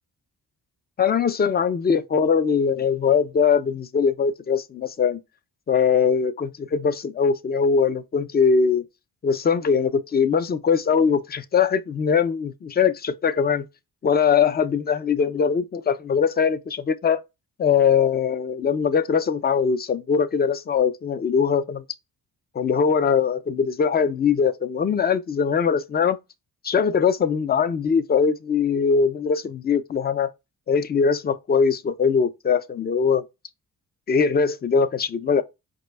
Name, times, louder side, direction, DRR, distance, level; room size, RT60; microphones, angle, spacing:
voice 1, 1.0-5.2 5.7-8.8 9.2-13.7 14.0-17.2 17.6-21.8 22.6-26.2 26.6-30.3 30.7-33.2 34.1-35.4, left 6 dB, 25° left, 0.4 m, -21 dB
5.1 x 2.2 x 3.2 m
cardioid pair, 115°, 36 cm